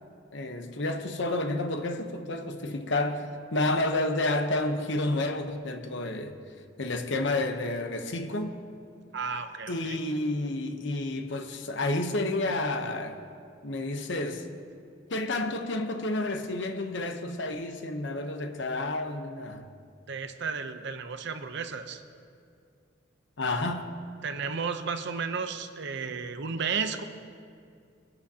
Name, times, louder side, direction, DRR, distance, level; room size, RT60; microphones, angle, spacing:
voice 1, 0.3-6.3 6.8-8.6 9.7-13.2 13.6-14.5 15.1-19.7 23.4-23.9, left 2 dB, 65° left, 1.0 m, -30 dB
voice 2, 9.1-10.0 20.1-22.0 24.2-27.0, right 5 dB, 65° right, 0.8 m, -33 dB
22.5 x 11.5 x 2.9 m
head